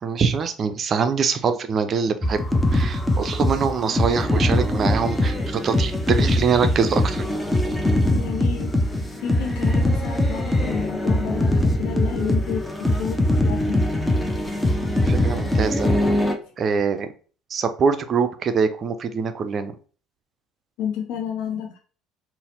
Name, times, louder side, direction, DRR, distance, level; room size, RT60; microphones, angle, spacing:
voice 1, 0.0-7.3 15.0-15.9 16.6-17.1 17.5-19.7, right 5 dB, 40° right, 9 dB, 0.4 m, -24 dB
sound 1, 2.2-16.3, left 1 dB, 10° left, 0.5 m, -22 dB
voice 2, 8.1-13.8 20.8-21.8, left 8 dB, 60° left, 3 dB, 0.5 m, -31 dB
3.9 x 2.0 x 2.8 m, 0.39 s
figure-of-eight pair, 60°, 0 cm